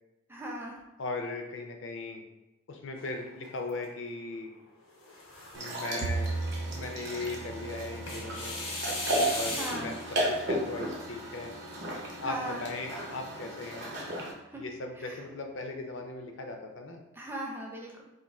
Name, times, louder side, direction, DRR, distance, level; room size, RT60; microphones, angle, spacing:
voice 1, 0.3-0.8 9.6-10.0 12.2-12.6 14.5-14.6 15.0-15.2 17.2-18.0, right 1 dB, 10° right, -2 dB, 0.4 m, -38 dB
voice 2, 1.0-2.2 2.7-4.5 5.5-8.6 9.3-10.0 10.3-11.5 12.2-13.9 14.5-17.0, left 3 dB, 60° left, 4 dB, 0.4 m, -38 dB
sound 1, 3.0-3.9 4.9-6.0 8.1-10.0, left 2 dB, 85° left, 1.0 m, -38 dB
sound 2, 5.5-14.3, right 1 dB, 50° right, 0.7 m, -35 dB
Bowed string instrument, 6.0-12.3, right 3 dB, 80° right, 0.3 m, -39 dB
2.6 x 2.5 x 4.1 m, 1.0 s
head